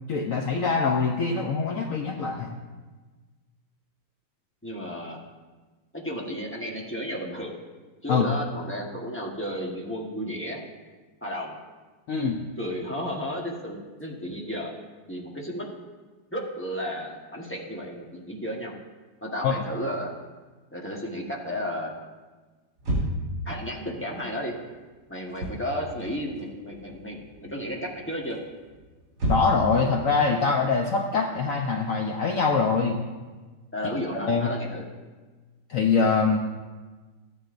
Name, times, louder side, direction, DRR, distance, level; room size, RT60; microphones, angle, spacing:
voice 1, 0.1-2.6 8.1-8.3 12.1-12.4 19.4-19.5 29.3-33.0 34.1-34.5 35.7-36.4, left 4 dB, 65° left, 2 dB, 0.8 m, -24 dB
voice 2, 4.6-5.2 5.9-7.6 8.0-10.6 11.2-11.6 12.6-14.8 15.1-15.7 16.3-18.7 19.2-20.1 20.7-21.9 23.4-24.5 25.1-28.4 33.7-34.8, equal, 10° left, -2 dB, 0.8 m, -33 dB
sound 1, 22.8-23.4 25.2-25.7 26.0-26.9 27.2-27.6 28.3-29.8, right 1 dB, 60° right, 3.9 m, -29 dB
14.5 x 9.8 x 2.5 m, 1.3 s
omnidirectional pair, 2.0 m